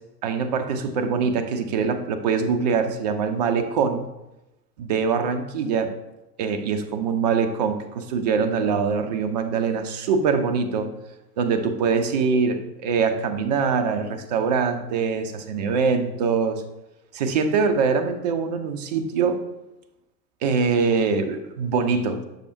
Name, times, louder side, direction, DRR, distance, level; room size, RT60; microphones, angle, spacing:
voice 1, 0.2-4.1 4.8-5.9 6.4-10.9 11.4-16.6 17.1-19.4 20.4-22.2, right 5 dB, 30° right, 7 dB, 0.4 m, -23 dB
6.7 x 6.4 x 2.7 m, 0.97 s
figure-of-eight pair, 95°, 48 cm